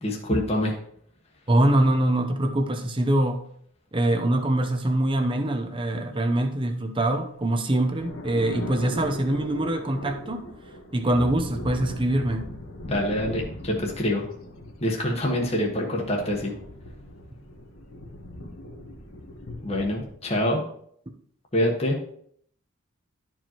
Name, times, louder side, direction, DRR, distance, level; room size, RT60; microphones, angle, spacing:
voice 1, 0.0-0.7 12.8-14.2 14.8-16.5 19.6-20.6 21.5-21.9, left 1 dB, 30° left, 1.3 m, -25 dB
voice 2, 1.5-3.4 3.9-10.5 10.9-12.5, right 1 dB, 25° right, 0.8 m, -24 dB
sound 1, 7.1-20.1, equal, 85° left, 1.3 m, -39 dB
12.0 x 4.7 x 3.0 m
head